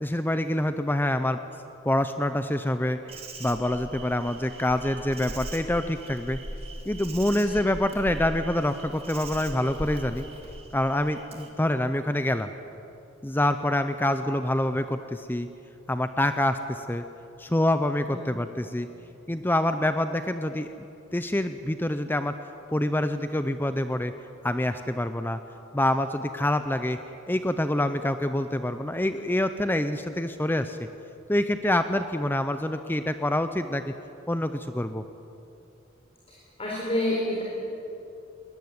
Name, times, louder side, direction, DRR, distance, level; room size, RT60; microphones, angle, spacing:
voice 1, 0.0-1.4 1.9-3.0 3.4-6.4 6.9-10.2 10.7-12.5 13.2-15.5 15.9-17.0 17.4-18.9 19.3-20.9 21.1-22.3 22.7-24.1 24.4-25.4 25.7-27.0 27.3-30.8 31.3-33.9 34.3-35.0, left 1 dB, 10° left, 9 dB, 0.6 m, -26 dB
Insect, 3.1-11.5, right 1 dB, 30° right, 2.7 m, -40 dB
voice 2, 36.3-37.4, left 1 dB, 30° left, -4 dB, 4.2 m, -29 dB
21.5 x 19.5 x 9.5 m, 2.8 s
head